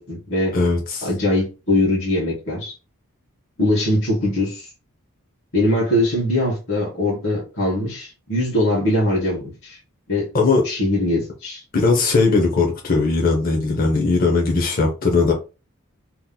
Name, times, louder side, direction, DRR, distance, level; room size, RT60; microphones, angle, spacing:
voice 1, 0.0-0.5 1.0-2.7 3.6-4.7 5.5-9.8 10.1-10.3 10.6-11.6, left 1 dB, 60° left, 1.3 m, -21 dB
voice 2, 0.5-1.1 10.3-10.6 11.7-15.3, left 3 dB, 40° left, 0.6 m, -18 dB
2.9 x 2.1 x 3.7 m
head